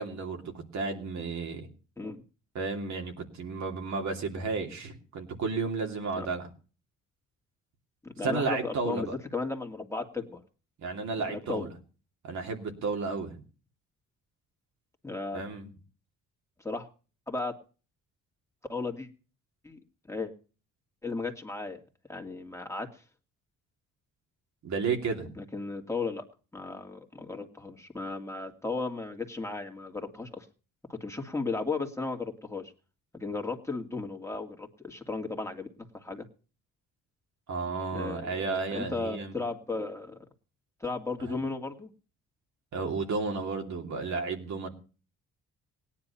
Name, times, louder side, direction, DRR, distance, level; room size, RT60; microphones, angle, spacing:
voice 1, 0.0-1.7 2.5-6.5 8.2-9.1 10.8-11.7 12.2-13.4 15.3-15.7 24.6-25.3 37.5-39.3 41.2-41.4 42.7-44.7, right 4 dB, 70° right, 3 dB, 2.9 m, -32 dB
voice 2, 8.0-9.1 9.3-10.4 11.3-11.7 15.0-15.4 16.6-16.9 17.3-17.6 18.7-19.1 19.6-19.8 20.1-20.3 21.0-21.8 22.1-22.9 25.4-26.2 26.5-30.5 30.9-32.7 33.1-35.7 35.9-36.2 37.9-38.5 38.7-40.2 40.8-41.9, left 3 dB, 10° left, 3 dB, 2.3 m, -35 dB
17.5 x 10.0 x 5.7 m, 0.38 s
cardioid pair, 90°, 30 cm